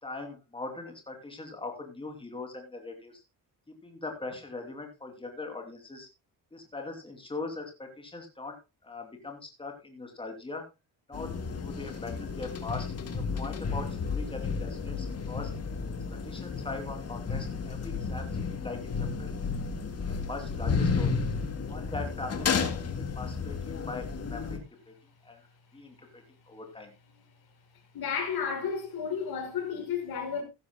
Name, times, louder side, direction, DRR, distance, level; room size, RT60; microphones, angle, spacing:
voice 1, 0.0-3.2 3.8-6.1 6.5-8.6 8.8-10.6 11.1-15.5 16.2-19.5 20.1-21.3 21.7-22.5 22.9-24.9 25.2-25.4 25.7-26.9, left 3 dB, 10° left, 2.8 m, -41 dB
sound 1, 11.1-24.6, left 5 dB, 35° left, 1.8 m, -32 dB
voice 2, 27.9-30.4, left 6 dB, 60° left, 5.3 m, -32 dB
15.5 x 12.5 x 2.2 m
cardioid pair, 175°, 41 cm